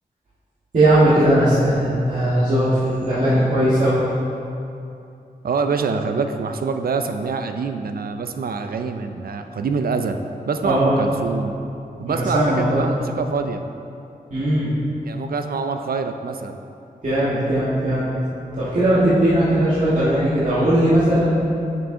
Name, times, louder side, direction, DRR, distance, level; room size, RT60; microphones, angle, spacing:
voice 1, 0.7-4.0 10.6-11.1 12.0-13.0 14.3-14.7 17.0-18.1 18.5-21.6, right 1 dB, 55° right, -12 dB, 1.5 m, -18 dB
voice 2, 5.4-10.2 10.5-11.6 12.0-13.6 15.0-16.6, right 5 dB, 75° right, 7 dB, 0.4 m, -25 dB
6.7 x 6.3 x 3.7 m, 2.6 s
wide cardioid pair, 95°, 15 cm